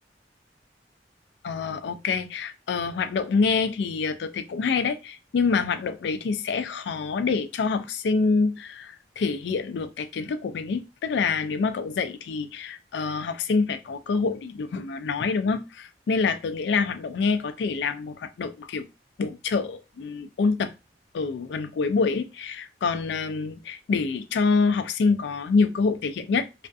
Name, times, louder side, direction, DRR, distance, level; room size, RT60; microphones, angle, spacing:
voice 1, 1.4-18.9 19.2-20.7 21.1-26.5, left 4 dB, 75° left, 0.3 m, -26 dB
2.4 x 2.4 x 2.3 m
head